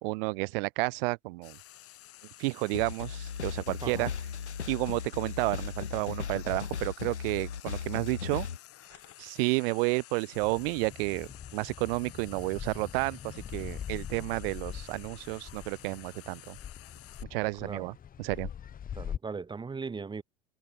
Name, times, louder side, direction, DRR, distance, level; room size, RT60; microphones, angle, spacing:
voice 1, 0.0-1.6 2.4-4.1 4.7-8.5 9.2-16.6 17.3-18.5, right 26 dB, 55° right, 1.3 m, -31 dB
Frying (food), 1.4-17.2, left 14 dB, 40° left, 6.2 m, -52 dB
sound 1, 2.7-8.6, left 7 dB, 80° left, 2.6 m, -37 dB
sound 2, 10.3-19.2, left 9 dB, 25° left, 1.2 m, -43 dB
voice 2, 17.6-17.9 18.9-20.2, right 5 dB, 15° right, 1.0 m, -38 dB
figure-of-eight pair, 75°, 34 cm